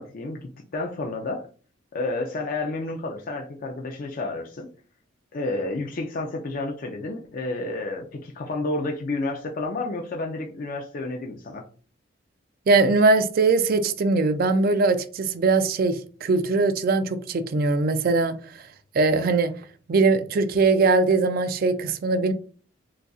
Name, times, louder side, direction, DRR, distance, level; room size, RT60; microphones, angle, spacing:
voice 1, 0.0-1.5 1.9-4.7 5.3-11.6, left 2 dB, 45° left, 0.4 m, -30 dB
voice 2, 12.7-18.4 18.9-19.5 19.9-22.3, right 3 dB, 50° right, 0.4 m, -21 dB
3.9 x 2.4 x 2.3 m
head